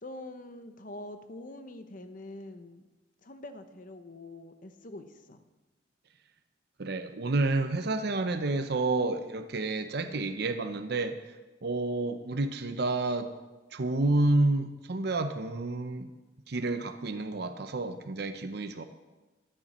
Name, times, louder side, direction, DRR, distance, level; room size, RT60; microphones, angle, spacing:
voice 1, 0.0-2.8 3.2-5.4, left 1 dB, 45° left, 9 dB, 0.8 m, -45 dB
voice 2, 6.8-11.3 11.6-13.3 13.7-16.1 16.5-18.8, right 2 dB, 60° right, 8 dB, 0.7 m, -29 dB
14.5 x 10.0 x 4.3 m, 1.2 s
head